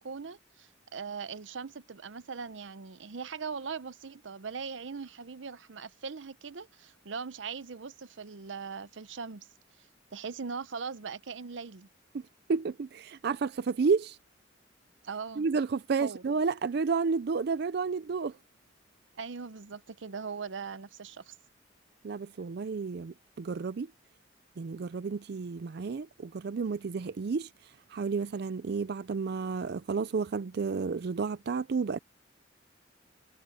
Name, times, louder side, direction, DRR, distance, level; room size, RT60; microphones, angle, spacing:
voice 1, 0.0-9.5 9.8-11.9 15.0-15.5 16.0-16.2 19.1-21.3, right 5 dB, 85° right, 0.7 m, -40 dB
voice 2, 12.5-14.2 15.4-18.3 22.0-23.9 24.6-32.0, right 5 dB, 60° right, 0.4 m, -31 dB
head